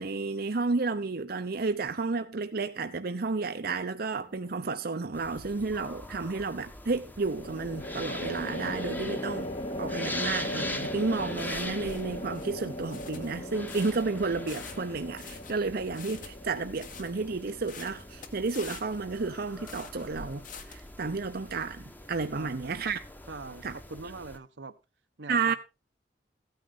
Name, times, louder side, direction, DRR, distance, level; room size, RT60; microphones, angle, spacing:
voice 1, 0.0-9.5 9.8-23.0 23.6-23.7 25.3-25.6, right 4 dB, 60° right, 0.7 m, -32 dB
sound 1, 4.1-4.7 7.2-18.6, left 1 dB, 30° left, 1.0 m, -39 dB
sound 2, 5.1-24.4, left 1 dB, 10° left, 1.1 m, -43 dB
sound 3, 11.4-20.9, left 5 dB, 50° left, 1.6 m, -47 dB
voice 2, 22.3-22.8 23.3-24.8 25.2-25.6, right 3 dB, 85° right, 1.1 m, -43 dB
15.0 x 9.6 x 3.9 m
head